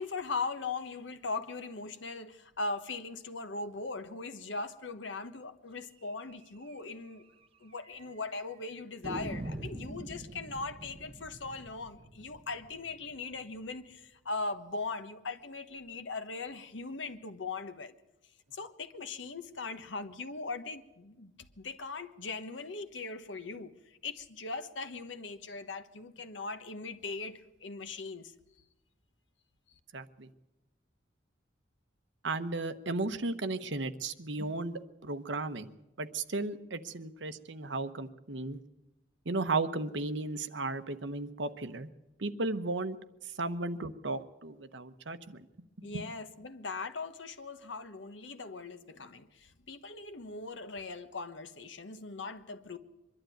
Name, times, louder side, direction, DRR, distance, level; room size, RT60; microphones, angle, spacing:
voice 1, 0.0-7.3 7.6-17.9 18.5-28.3 45.8-52.8, left 3 dB, 75° left, 1.2 m, -40 dB
sound 1, 6.2-6.4 6.7-6.8 7.1-7.2 7.8-8.3 9.0-13.8, right 1 dB, 30° right, 1.0 m, -44 dB
voice 2, 29.9-30.3 32.2-38.6 39.3-41.9 42.2-43.0 43.4-45.5 45.8-45.9, right 3 dB, 70° right, 1.0 m, -35 dB
23.5 x 12.0 x 9.2 m
head